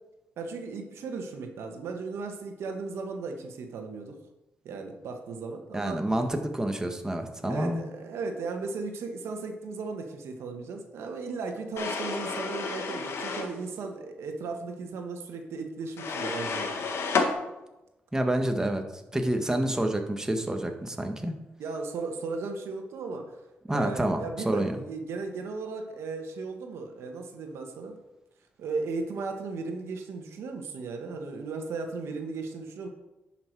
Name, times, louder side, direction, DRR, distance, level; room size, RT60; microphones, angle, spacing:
voice 1, 0.4-4.2 4.6-6.1 7.4-16.8 21.6-23.4 23.7-28.0 28.6-32.9, right 4 dB, 80° right, 4 dB, 1.4 m, -36 dB
voice 2, 5.7-7.9 18.1-18.8 19.1-21.3 23.7-24.8, right 1 dB, 15° right, 4 dB, 1.4 m, -28 dB
sound 1, 11.8-13.5 16.0-17.3, left 4 dB, 70° left, 1.5 m, -30 dB
10.5 x 5.9 x 4.7 m, 0.99 s
cardioid pair, 65°, 4 cm